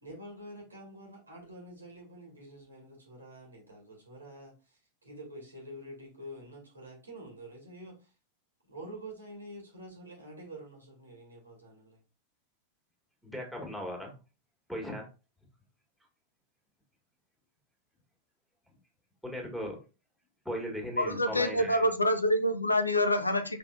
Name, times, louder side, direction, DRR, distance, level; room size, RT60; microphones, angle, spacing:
voice 1, 0.0-8.1 8.7-12.0, right 1 dB, 80° right, 1.9 m, -47 dB
voice 2, 13.2-14.1 14.7-15.1 19.2-19.8 20.4-21.8, equal, ahead, 1.7 m, -37 dB
voice 3, 21.0-23.6, left 1 dB, 85° left, 0.5 m, -26 dB
5.6 x 3.6 x 2.4 m
figure-of-eight pair, 90°, 0 cm